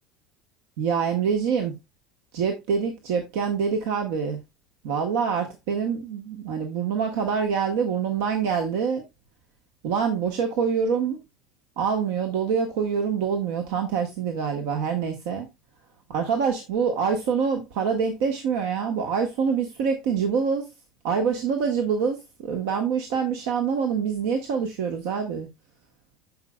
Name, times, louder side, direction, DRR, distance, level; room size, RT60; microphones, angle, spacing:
voice 1, 0.8-1.7 2.3-4.4 4.8-9.1 9.8-11.2 11.8-15.5 16.1-20.7 21.0-25.5, right 6 dB, 60° right, 1.2 m, -25 dB
14.0 x 5.2 x 2.2 m
figure-of-eight pair, 70°, 0 cm